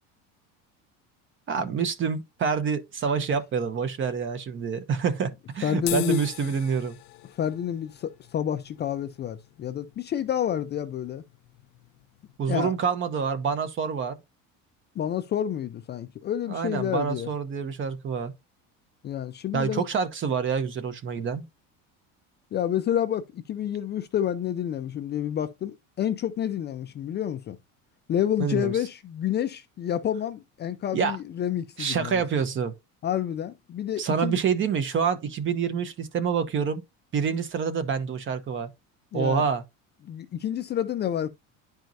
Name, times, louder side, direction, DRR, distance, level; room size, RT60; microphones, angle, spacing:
voice 1, 1.5-7.0 12.4-14.2 16.5-18.3 19.5-21.4 28.4-28.7 30.9-31.2 31.8-32.7 34.0-36.8 37.1-38.7 39.1-39.6, right 6 dB, 35° right, 0.9 m, -27 dB
voice 2, 5.6-6.2 7.3-11.2 12.5-12.7 15.0-17.3 19.0-19.9 22.5-27.6 28.1-32.2 33.0-34.4 39.1-39.4 40.0-41.3, left 10 dB, 30° left, 0.5 m, -29 dB
sound 1, 5.8-12.4, left 21 dB, 80° left, 0.7 m, -42 dB
10.5 x 4.6 x 2.6 m
cardioid pair, 140°, 37 cm